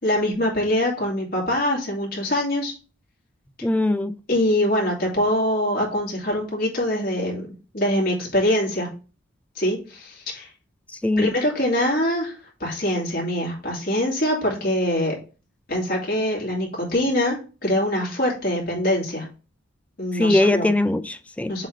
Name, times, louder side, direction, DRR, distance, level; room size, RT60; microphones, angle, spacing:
voice 1, 0.0-2.7 4.3-7.5 7.7-8.9 9.6-10.5 11.2-15.1 15.7-19.3 20.0-20.7 21.5-21.7, left 1 dB, 50° left, 2.5 m, -23 dB
voice 2, 3.6-4.2 11.0-11.3 20.2-21.5, left 2 dB, 5° left, 0.3 m, -21 dB
7.3 x 2.8 x 5.0 m
head